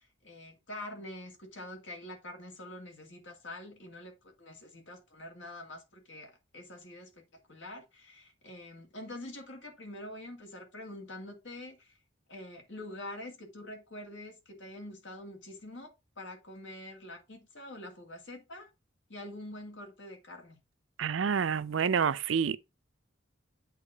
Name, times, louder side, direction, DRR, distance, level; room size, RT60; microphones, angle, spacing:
voice 1, 0.0-12.0 12.3-18.7 19.1-20.6, left 1 dB, 70° left, 2.2 m, -46 dB
voice 2, 21.0-22.6, right 6 dB, 80° right, 0.5 m, -28 dB
8.3 x 3.0 x 4.9 m
head